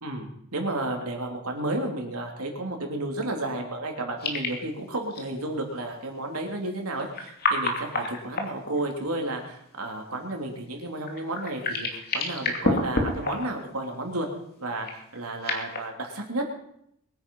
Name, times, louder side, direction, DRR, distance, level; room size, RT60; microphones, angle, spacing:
voice 1, 0.0-14.3 14.6-16.6, right 2 dB, 90° right, 2 dB, 3.3 m, -32 dB
sound 1, 4.2-4.7 5.1-5.2 7.0-9.1 11.0-13.7 14.8-15.8, left 2 dB, 45° left, 2.7 m, -29 dB
22.5 x 9.5 x 5.6 m, 0.74 s
head